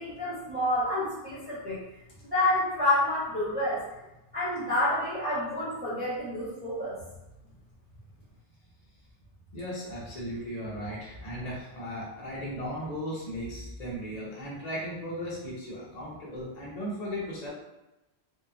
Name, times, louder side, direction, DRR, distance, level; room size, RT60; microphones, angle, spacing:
voice 1, 0.0-1.8 2.3-3.8 4.3-7.0, left 1 dB, 10° right, -14 dB, 1.0 m, -28 dB
voice 2, 9.5-17.5, equal, 45° left, -6 dB, 0.6 m, -36 dB
2.8 x 2.2 x 2.4 m, 0.96 s
omnidirectional pair, 1.2 m